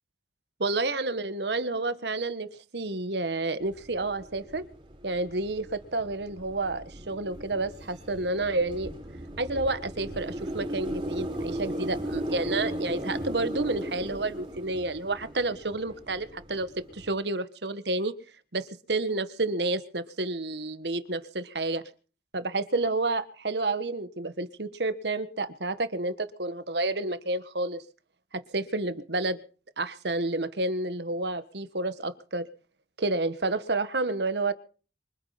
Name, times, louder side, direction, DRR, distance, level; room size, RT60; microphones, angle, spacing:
voice 1, 0.6-2.5 2.7-4.6 5.0-8.9 9.4-18.1 18.5-21.8 22.3-27.8 28.3-29.4 29.8-32.5 33.0-34.5, right 2 dB, 70° right, 12 dB, 1.5 m, -30 dB
sound 1, 3.6-17.1, equal, 30° right, 3.8 m, -37 dB
24.5 x 9.5 x 5.8 m, 0.39 s
head